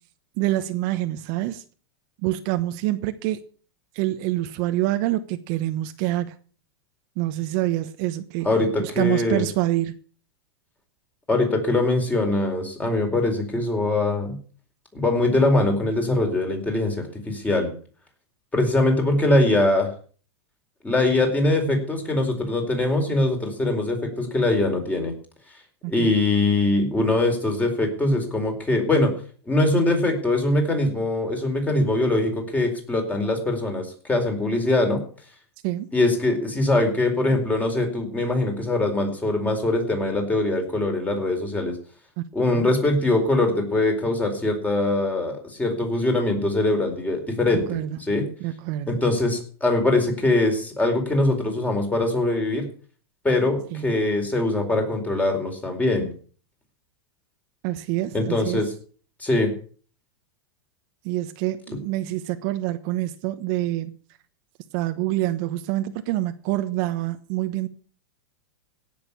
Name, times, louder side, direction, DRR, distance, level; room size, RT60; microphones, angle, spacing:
voice 1, 0.4-1.6 2.2-3.4 3.9-6.3 7.2-8.5 8.8-9.9 25.8-26.1 35.6-35.9 42.2-42.3 47.7-48.0 48.4-49.0 53.7-53.9 57.6-58.6 61.0-64.0 64.7-67.7, right 15 dB, 50° right, 1.1 m, -26 dB
voice 2, 8.4-9.4 11.3-14.4 14.9-17.7 18.5-19.9 20.8-25.1 25.9-29.1 29.5-35.0 35.9-41.8 42.3-47.6 48.1-48.2 48.9-52.7 53.2-56.1 58.1-58.7 59.2-59.5, left 2 dB, 10° left, 4.5 m, -22 dB
17.0 x 6.9 x 8.5 m
hypercardioid pair, 135°, 14 cm